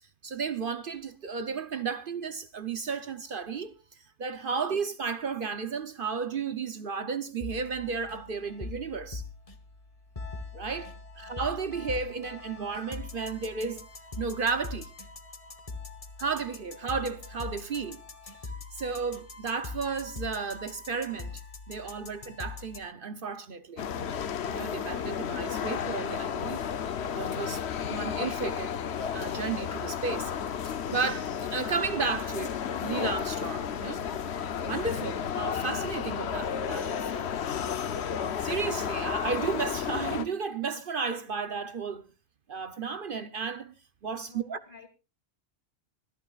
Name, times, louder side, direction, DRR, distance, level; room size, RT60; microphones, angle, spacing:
voice 1, 0.2-3.7 4.2-9.2 10.5-10.9 11.2-13.9 14.2-14.9 16.2-18.0 18.7-21.4 21.7-23.8 24.4-26.6 27.1-27.6 27.9-28.8 29.1-30.3 30.6-32.6 32.8-34.0 34.6-37.3 38.4-42.0 42.5-43.7 44.0-44.6, right 5 dB, 55° right, 0.9 m, -33 dB
sound 1, 7.4-22.8, left 3 dB, 30° left, 1.3 m, -42 dB
voice 2, 10.9-11.4 11.8-12.0 16.8-16.9 22.2-22.3 44.2-44.9, left 5 dB, 50° left, 2.9 m, -54 dB
sound 2, 23.8-40.3, left 8 dB, 75° left, 1.1 m, -32 dB
25.5 x 12.0 x 2.4 m
omnidirectional pair, 1.1 m